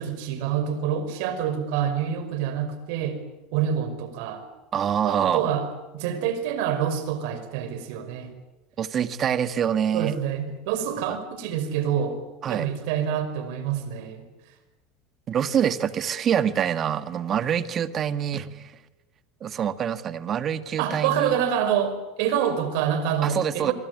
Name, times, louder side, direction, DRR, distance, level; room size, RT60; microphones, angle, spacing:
voice 1, 0.0-3.2 3.5-4.4 5.0-5.7 5.9-8.3 9.9-12.2 12.5-14.3 20.8-23.7, right 8 dB, 70° right, 10 dB, 5.4 m, -27 dB
voice 2, 4.7-5.5 8.8-10.2 11.1-11.2 12.4-12.7 15.3-18.7 19.4-21.4 23.2-23.7, right 8 dB, 40° right, 12 dB, 1.8 m, -25 dB
25.5 x 23.5 x 9.8 m, 1.1 s
supercardioid pair, 100°, 0 cm